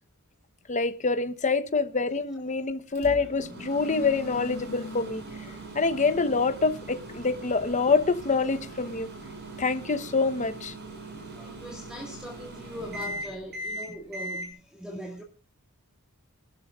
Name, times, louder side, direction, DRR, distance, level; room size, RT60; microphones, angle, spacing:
voice 1, 0.7-5.2 5.7-9.1 9.6-10.7, left 4 dB, 35° left, 1.0 m, -26 dB
Microwave oven, 2.9-14.5, right 1 dB, 50° right, 5.9 m, -40 dB
voice 2, 11.4-15.2, equal, 5° right, 1.8 m, -40 dB
24.0 x 12.0 x 2.4 m
head